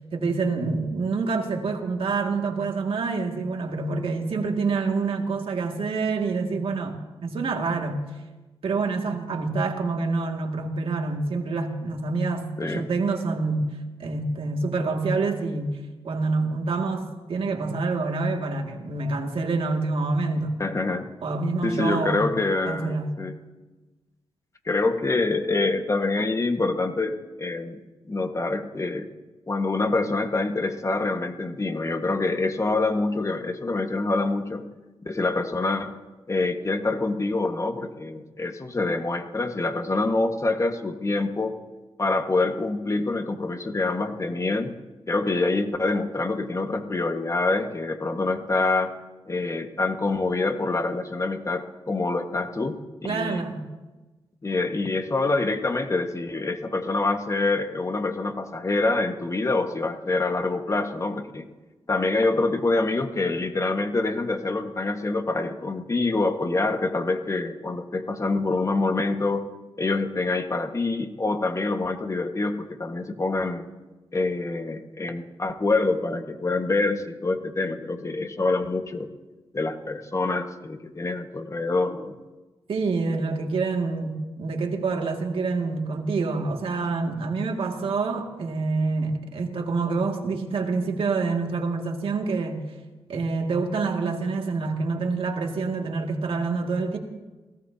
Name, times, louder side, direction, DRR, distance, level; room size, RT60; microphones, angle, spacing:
voice 1, 0.1-8.0 8.6-13.7 14.0-15.8 16.0-20.5 21.2-22.2 22.6-23.1 53.0-53.7 82.7-92.6 93.1-97.0, right 3 dB, 70° right, 2 dB, 2.2 m, -27 dB
voice 2, 20.6-21.1 21.6-23.3 24.6-27.8 28.1-29.1 29.5-34.7 35.0-35.9 36.3-41.6 42.0-44.7 45.1-48.9 49.3-52.8 53.1-53.5 54.4-61.5 61.9-69.5 69.8-73.7 74.1-79.1 79.5-82.1, left 3 dB, 30° left, 6 dB, 1.5 m, -26 dB
28.5 x 17.5 x 2.8 m, 1.2 s
cardioid pair, 70°, 10 cm